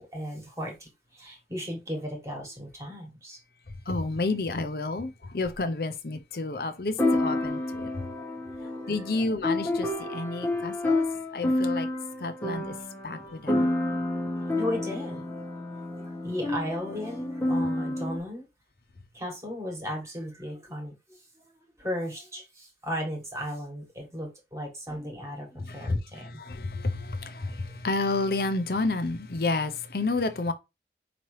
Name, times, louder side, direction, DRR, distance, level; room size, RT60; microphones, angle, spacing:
voice 1, 0.0-3.4 7.9-9.3 11.6-11.8 12.4-12.6 14.5-15.5 15.7-18.5 19.1-26.3 27.6-27.7, equal, 15° right, 1.4 m, -36 dB
voice 2, 3.9-8.1 8.9-11.0 11.3-11.9 12.2-12.7 13.0-13.7 25.6-30.5, left 3 dB, 55° left, 0.6 m, -30 dB
sound 1, 5.5-5.6 7.0-18.2, left 1 dB, 10° left, 0.7 m, -29 dB
5.0 x 2.9 x 3.1 m
head